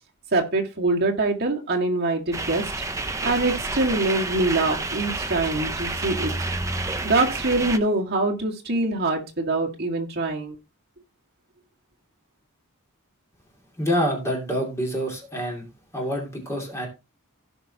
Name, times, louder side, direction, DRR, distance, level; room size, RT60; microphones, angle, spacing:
voice 1, 0.3-2.6 3.2-6.3 7.0-10.6, right 2 dB, 45° right, 0 dB, 1.9 m, -24 dB
sound 1, 2.3-7.8, right 2 dB, 15° right, 0.5 m, -29 dB
voice 2, 13.8-15.7 15.9-16.9, equal, 10° left, 0 dB, 2.6 m, -26 dB
16.5 x 5.6 x 2.9 m, 0.27 s
head